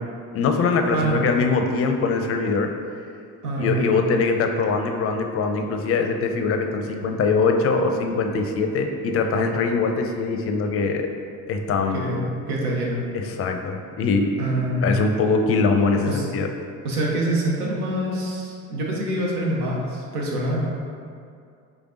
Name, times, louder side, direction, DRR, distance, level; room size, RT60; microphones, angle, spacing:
voice 1, 0.3-2.7 3.6-11.1 11.5-12.0 13.1-14.3 14.8-16.5, left 4 dB, 35° left, 4 dB, 0.4 m, -22 dB
voice 2, 3.4-3.9 11.9-13.1 14.4-14.9 16.0-16.3 16.8-20.7, right 1 dB, 85° right, -3 dB, 0.8 m, -25 dB
5.0 x 3.3 x 2.5 m, 2.3 s
hypercardioid pair, 55°, 45 cm